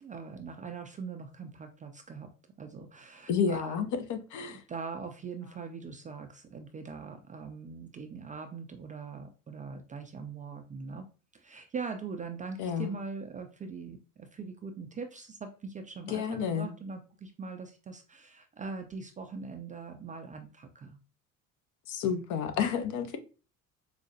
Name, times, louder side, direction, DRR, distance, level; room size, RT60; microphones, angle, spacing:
voice 1, 0.0-2.3 2.6-3.9 4.5-11.1 11.3-21.0, right 5 dB, 20° right, 0.3 m, -42 dB
voice 2, 3.3-4.6 12.6-12.9 16.1-16.7 21.9-23.2, left 7 dB, 50° left, 0.6 m, -30 dB
4.7 x 2.1 x 2.7 m
hypercardioid pair, 65°, 41 cm